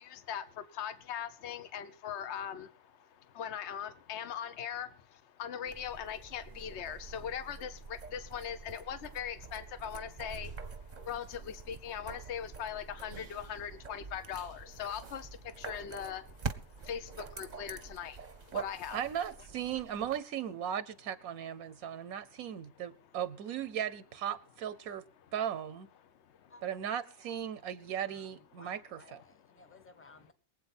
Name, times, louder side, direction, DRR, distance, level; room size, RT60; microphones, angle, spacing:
voice 1, 0.0-19.0 21.6-22.2 26.1-26.5, left 8 dB, 55° left, 1.2 m, -41 dB
sound 1, 5.7-20.2, right 5 dB, 35° right, 0.9 m, -46 dB
voice 2, 18.9-25.0 25.3-25.9 26.6-29.0, right 9 dB, 85° right, 1.2 m, -37 dB
voice 3, 28.0-30.3, left 2 dB, 10° left, 1.2 m, -58 dB
22.5 x 8.2 x 4.2 m
omnidirectional pair, 1.5 m